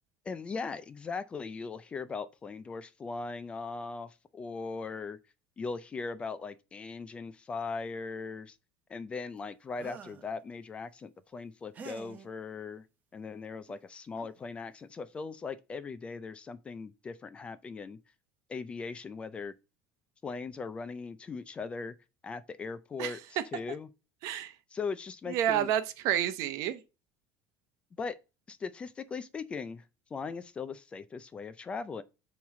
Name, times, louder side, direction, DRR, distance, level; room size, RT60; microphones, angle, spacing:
voice 1, 0.3-5.2 5.6-8.6 8.9-12.9 13.1-18.0 18.5-19.5 20.2-21.9 22.2-23.9 24.7-25.7 28.0-28.2 28.5-29.8 30.1-32.0, left 4 dB, 20° left, 0.4 m, -39 dB
sound 1, 9.7-10.3 11.7-12.3 13.7-13.8 14.1-14.4, right 5 dB, 25° right, 0.7 m, -47 dB
voice 2, 24.2-24.5 25.3-26.8, right 11 dB, 60° right, 0.8 m, -29 dB
7.1 x 3.1 x 4.7 m
cardioid pair, 160°, 6 cm